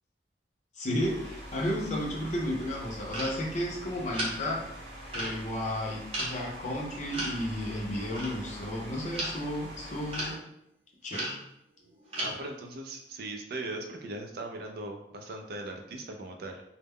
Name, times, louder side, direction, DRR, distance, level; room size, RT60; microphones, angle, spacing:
voice 1, 0.7-4.6 5.1-10.4 11.0-11.4, left 1 dB, 40° left, -1 dB, 0.5 m, -33 dB
sound 1, 1.0-10.3, equal, 75° right, 0.9 m, -44 dB
sound 2, 3.1-3.3 4.1-4.3 5.1-5.4 6.1-6.3 7.1-7.4 8.1-8.3 8.8-9.6 10.1-10.3 11.1-11.4 11.8-12.4, right 1 dB, 35° right, 0.7 m, -34 dB
voice 2, 12.2-16.6, right 2 dB, 55° right, 3 dB, 0.3 m, -39 dB
2.2 x 2.0 x 3.4 m, 0.80 s
head